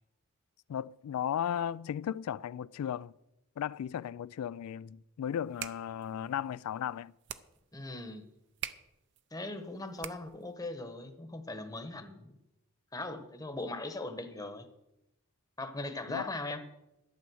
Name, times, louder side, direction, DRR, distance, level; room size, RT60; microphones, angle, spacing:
voice 1, 0.7-3.1 3.6-7.1 16.1-16.2, left 9 dB, 85° left, 0.3 m, -35 dB
sound 1, 5.3-10.5, right 11 dB, 55° right, 0.6 m, -46 dB
voice 2, 7.7-8.2 9.3-12.3 12.9-14.7 15.6-16.6, left 2 dB, 15° left, 1.0 m, -39 dB
12.0 x 8.4 x 6.2 m
head